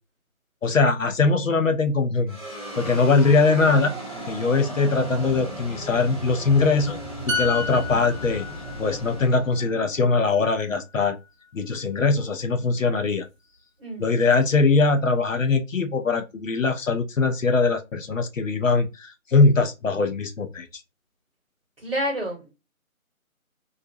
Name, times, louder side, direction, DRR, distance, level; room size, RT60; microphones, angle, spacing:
voice 1, 0.6-2.4 2.8-3.9 4.3-7.0 7.3-8.5 8.8-11.2 11.5-13.3 14.0-20.7, left 4 dB, 65° left, 0.6 m, -21 dB
sound 1, 2.3-10.8, right 1 dB, 25° left, 0.7 m, -36 dB
sound 2, 7.3-10.9 11.2-11.4, left 4 dB, 65° right, 0.6 m, -33 dB
voice 2, 13.8-14.3 21.8-22.5, equal, 40° right, 1.0 m, -30 dB
2.5 x 2.1 x 2.5 m
figure-of-eight pair, 160°, 42 cm